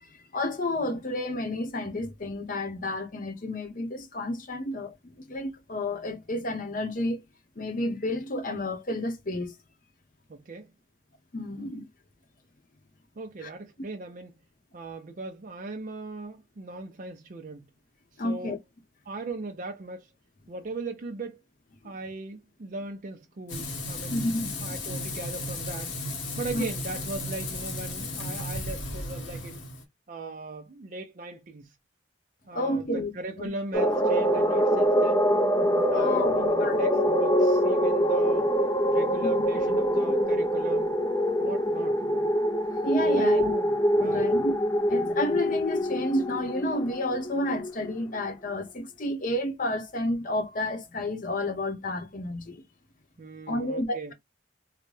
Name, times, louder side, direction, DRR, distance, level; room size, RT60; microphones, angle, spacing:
voice 1, 0.0-7.2 7.6-9.5 11.3-11.9 13.4-13.5 18.2-18.6 23.5-23.6 24.1-24.5 26.5-26.7 32.5-33.1 33.4-33.5 35.9-36.9 39.2-39.3 39.7-39.8 42.8-43.5 44.0-44.5 44.9-52.6 53.5-54.1, left 1 dB, 45° left, 0.8 m, -30 dB
voice 2, 10.3-10.7 13.2-14.3 14.7-17.7 18.1-18.6 19.1-20.1 20.5-21.4 21.8-24.3 24.6-26.0 26.4-29.6 30.1-31.7 32.5-35.3 35.9-38.5 38.9-41.0 41.4-42.3 43.1-44.5 53.2-54.1, right 3 dB, 45° right, 0.5 m, -38 dB
Frying (food), 23.5-29.8, left 2 dB, 80° left, 1.2 m, -34 dB
sound 1, 33.7-48.3, equal, 20° left, 0.5 m, -24 dB
3.8 x 2.2 x 3.1 m
head